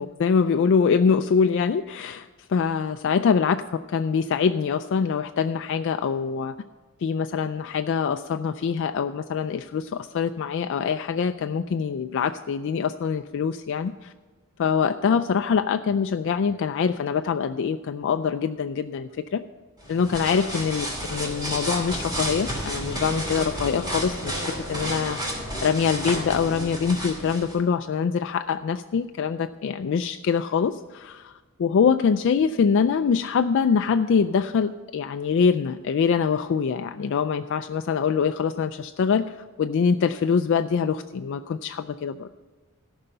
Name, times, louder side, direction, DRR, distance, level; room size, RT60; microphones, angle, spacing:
voice 1, 0.0-6.5 7.0-14.1 14.6-19.4 19.9-31.3 31.6-42.3, left 6 dB, 60° left, 8 dB, 0.3 m, -24 dB
sound 1, 19.8-27.6, equal, 20° right, 2.6 m, -31 dB
14.0 x 5.6 x 6.6 m, 1.3 s
head